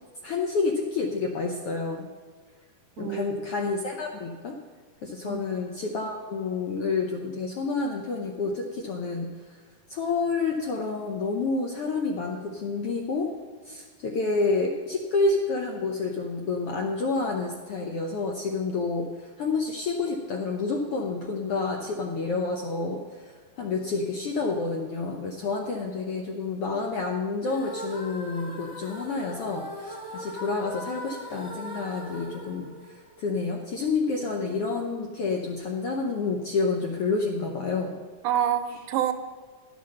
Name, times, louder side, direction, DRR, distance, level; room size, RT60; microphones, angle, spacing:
voice 1, 0.2-2.1 3.0-4.6 5.0-9.3 9.9-13.3 13.6-37.9, left 4 dB, 75° left, 2 dB, 1.4 m, -29 dB
voice 2, 3.0-3.4 5.2-5.4 38.2-39.1, right 10 dB, 80° right, 8 dB, 2.2 m, -27 dB
sound 1, 27.4-33.5, equal, 15° left, 1.1 m, -40 dB
12.0 x 8.3 x 6.5 m, 1.5 s
omnidirectional pair, 3.7 m